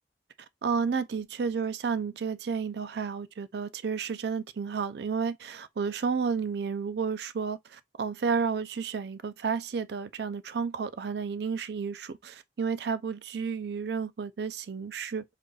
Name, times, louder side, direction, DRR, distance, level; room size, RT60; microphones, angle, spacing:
voice 1, 0.6-15.2, right 5 dB, 70° right, 0.4 m, -31 dB
5.3 x 2.4 x 2.3 m
head